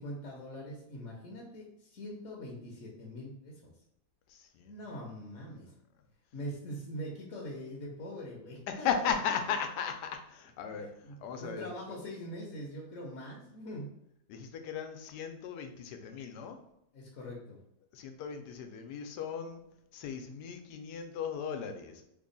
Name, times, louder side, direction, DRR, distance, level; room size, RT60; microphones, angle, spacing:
voice 1, 0.0-3.7 4.6-5.7 6.3-9.4 10.8-13.9 16.9-17.6, equal, 60° left, -2 dB, 1.0 m, -43 dB
voice 2, 4.3-4.7 8.7-10.9 11.2-11.7 14.3-16.6 17.9-19.6 19.9-22.1, left 7 dB, 85° left, 6 dB, 1.2 m, -36 dB
3.4 x 2.2 x 3.7 m, 0.79 s
omnidirectional pair, 1.7 m